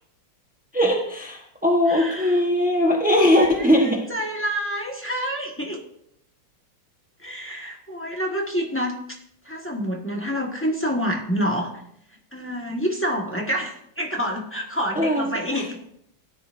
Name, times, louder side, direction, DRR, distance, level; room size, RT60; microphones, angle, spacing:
voice 1, 0.7-4.0 15.0-15.7, left 1 dB, 10° right, 0 dB, 0.6 m, -20 dB
voice 2, 1.9-2.4 3.1-5.8 7.2-9.0 9.4-11.7 12.3-15.8, equal, 10° left, -1 dB, 1.2 m, -28 dB
16.0 x 10.0 x 2.6 m, 0.73 s
omnidirectional pair, 2.1 m